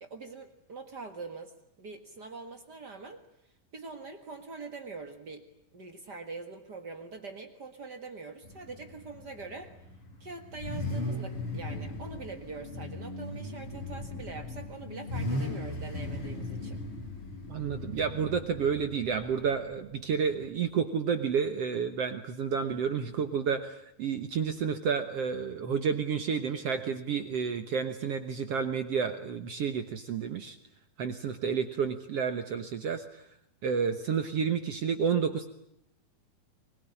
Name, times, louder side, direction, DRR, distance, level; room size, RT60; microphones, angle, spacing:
voice 1, 0.0-3.2 3.7-9.7 10.2-16.8, right 4 dB, 45° right, 6 dB, 1.4 m, -44 dB
Car / Idling / Accelerating revving vroom, 8.4-20.5, left 2 dB, 35° left, 5.0 m, -38 dB
voice 2, 17.5-30.6 31.0-33.2 33.6-35.5, right 6 dB, 65° right, 8 dB, 1.6 m, -30 dB
24.0 x 21.0 x 10.0 m, 0.73 s
omnidirectional pair, 4.3 m